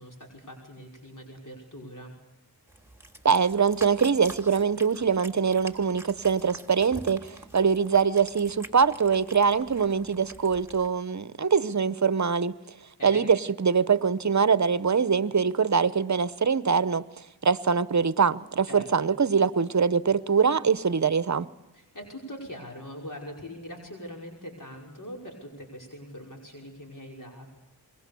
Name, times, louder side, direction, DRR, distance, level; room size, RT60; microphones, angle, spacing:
voice 1, 0.0-2.1 13.0-13.3 18.7-19.1 21.7-27.5, equal, 50° left, 5.8 m, -42 dB
Cat, 2.7-10.9, right 1 dB, 5° right, 3.5 m, -46 dB
voice 2, 3.2-12.5 13.0-21.5, right 6 dB, 45° right, 0.9 m, -23 dB
25.5 x 22.0 x 6.9 m
cardioid pair, 45°, 39 cm